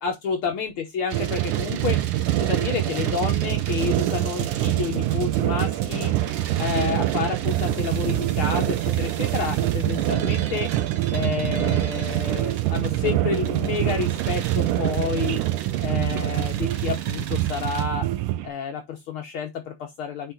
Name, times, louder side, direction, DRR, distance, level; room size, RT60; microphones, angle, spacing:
voice 1, 0.0-2.0 2.4-6.1 6.6-10.7 11.1-15.4 15.8-18.1 18.4-20.3, left 6 dB, 75° left, 1.2 m, -29 dB
sound 1, 1.1-17.8, right 8 dB, 65° right, 1.6 m, -39 dB
sound 2, 1.1-18.5, right 14 dB, 85° right, 2.1 m, -25 dB
8.5 x 3.0 x 3.7 m
omnidirectional pair, 3.6 m